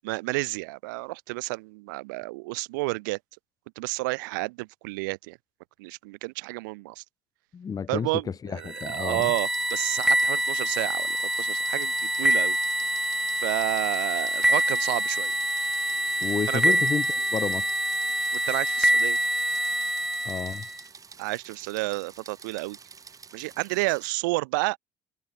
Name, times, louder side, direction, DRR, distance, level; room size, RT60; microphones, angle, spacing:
voice 1, 0.0-3.2 3.7-5.4 5.8-7.0 7.9-12.6 13.4-15.3 16.5-16.8 18.3-19.2 21.2-22.8 23.3-24.8, right 24 dB, 85° right, 3.3 m, -31 dB
voice 2, 7.5-8.1 8.4-9.3 16.2-17.7 20.2-20.7, left 6 dB, 40° left, 2.6 m, -31 dB
sound 1, 8.7-20.8, right 1 dB, 5° right, 0.9 m, -26 dB
sound 2, 9.2-24.1, right 5 dB, 35° right, 5.6 m, -49 dB
hypercardioid pair, 70°, 10 cm